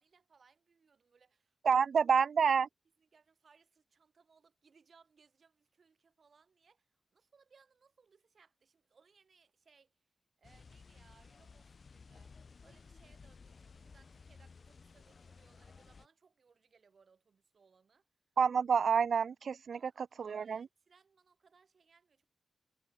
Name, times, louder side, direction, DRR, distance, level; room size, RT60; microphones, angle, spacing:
voice 1, 0.0-1.6 3.0-9.9 10.4-12.3 12.6-18.1 19.7-22.3, right 5 dB, 55° right, 7.7 m, -68 dB
voice 2, 1.6-2.7 18.4-20.7, right 6 dB, 70° right, 0.5 m, -29 dB
sound 1, 10.4-16.1, left 5 dB, 45° left, 3.7 m, -57 dB
wide cardioid pair, 145°, 0 cm